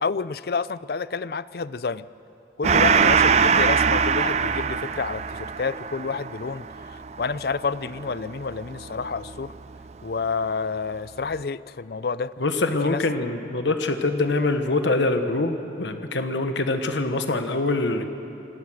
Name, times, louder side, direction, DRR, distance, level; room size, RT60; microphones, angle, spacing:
voice 1, 0.0-2.1 2.6-9.5 10.0-12.3 12.8-13.0, left 4 dB, 55° left, 17 dB, 0.5 m, -29 dB
Gong, 2.6-9.6, right 6 dB, 35° right, 0.4 m, -23 dB
voice 2, 12.4-18.0, left 2 dB, 85° left, 7 dB, 1.3 m, -24 dB
27.0 x 19.5 x 6.4 m, 2.9 s
head